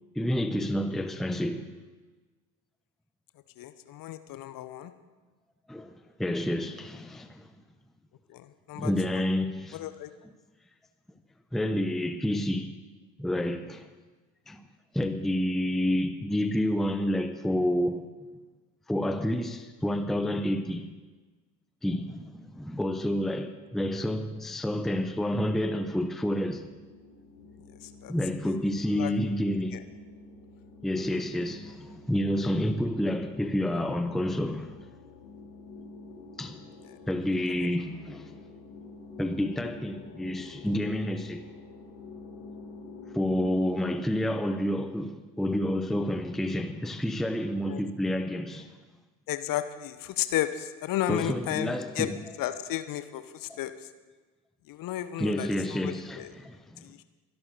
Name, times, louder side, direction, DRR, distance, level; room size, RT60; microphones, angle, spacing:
voice 1, 0.2-1.7 5.7-7.5 8.7-9.8 11.5-12.7 13.2-13.9 14.5-14.7 14.9-18.1 18.9-20.9 21.8-26.7 28.1-29.8 30.8-34.7 36.4-36.6 37.1-38.3 39.2-41.4 43.1-48.7 51.1-52.2 53.5-53.6 55.2-56.8, left 1 dB, ahead, 0.8 m, -29 dB
voice 2, 3.6-4.9 8.3-9.2 9.7-10.1 27.8-28.1 28.5-28.6 28.9-29.1 29.7-29.8 36.8-37.0 37.5-37.7 47.7-47.8 49.3-52.1 52.4-53.9 54.7-56.3 56.8-57.0, left 13 dB, 40° left, 1.1 m, -34 dB
sound 1, 25.1-43.5, left 3 dB, 70° left, 4.8 m, -48 dB
24.0 x 11.0 x 4.1 m
figure-of-eight pair, 65°, 50 cm